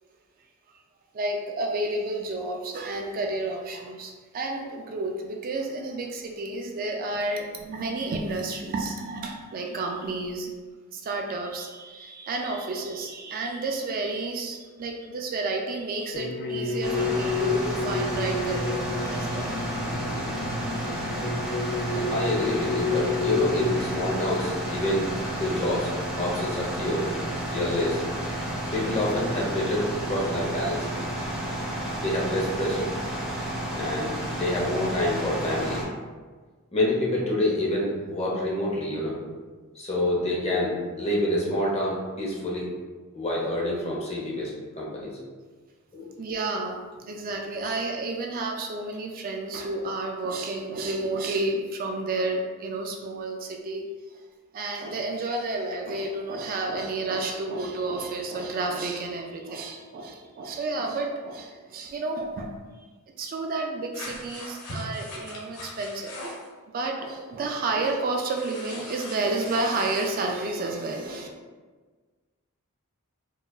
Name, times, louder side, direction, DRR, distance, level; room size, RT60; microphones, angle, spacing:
voice 1, 1.1-10.5 10.9-19.7 46.2-53.9 54.1-54.2 54.5-62.5 63.2-66.1 66.7-71.3, right 2 dB, 40° right, 2 dB, 0.3 m, -31 dB
sound 1, 16.1-24.1, left 3 dB, 50° left, 0.3 m, -30 dB
sound 2, 16.8-35.8, right 1 dB, ahead, 1.0 m, -31 dB
voice 2, 21.9-25.1 25.4-25.9 26.2-27.1 27.5-28.0 28.7-30.9 32.0-32.9 33.7-35.8 36.7-39.2 39.7-42.7 43.1-45.1 45.9-46.1, left 1 dB, 30° left, -4 dB, 0.8 m, -27 dB
sound 3, 63.9-66.5 68.3-70.1, left 1 dB, 80° left, 1.0 m, -40 dB
4.6 x 2.4 x 2.3 m, 1.4 s
head